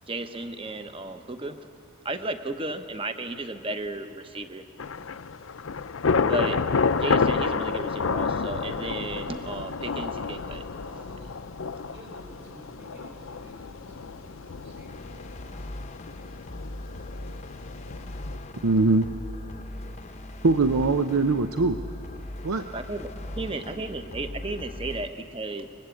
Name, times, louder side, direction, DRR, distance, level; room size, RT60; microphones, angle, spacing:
voice 1, 0.0-1.7 2.0-4.6 6.1-6.6 7.0-10.7 18.1-18.6 20.0-20.4 22.7-25.7, right 2 dB, 25° right, 8 dB, 1.0 m, -34 dB
Thunder / Rain, 4.8-18.4, left 5 dB, 65° left, 0.6 m, -30 dB
voice 2, 10.8-15.2, equal, 55° right, 0 dB, 6.2 m, -49 dB
sound 1, 14.9-25.1, left 1 dB, 30° left, 0.8 m, -39 dB
voice 3, 18.6-19.1 20.4-21.8 22.4-22.6, right 3 dB, 90° right, 8 dB, 0.7 m, -21 dB
24.0 x 20.5 x 8.3 m, 2.6 s
head